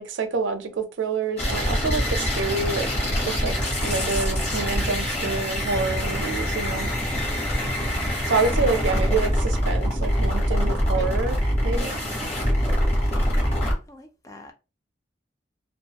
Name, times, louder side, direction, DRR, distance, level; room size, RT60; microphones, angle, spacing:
voice 1, 0.0-3.6 3.8-6.9 8.3-11.4 11.6-12.0, right 4 dB, 85° right, 0.5 m, -27 dB
sound 1, 1.4-13.7, equal, 35° left, 0.9 m, -24 dB
voice 2, 1.5-2.8 7.2-7.9 8.3-8.5 11.8-12.4 13.0-13.6 13.9-14.5, left 1 dB, 15° left, 0.3 m, -45 dB
sound 2, 2.5-11.1, left 1 dB, 65° left, 0.9 m, -43 dB
2.4 x 2.2 x 2.8 m
head